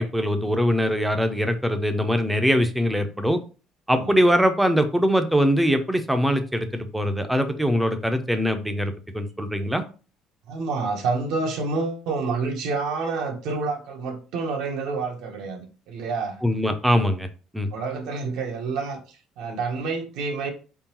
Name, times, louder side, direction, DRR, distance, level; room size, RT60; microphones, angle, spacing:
voice 1, 0.0-3.4 3.9-9.8 16.4-17.3 17.5-17.7, equal, 5° right, 0.5 m, -22 dB
voice 2, 10.5-16.4 17.0-17.1 17.7-19.0 19.4-20.5, right 4 dB, 70° right, 0.9 m, -28 dB
4.5 x 3.7 x 2.9 m
cardioid pair, 165°, 0 cm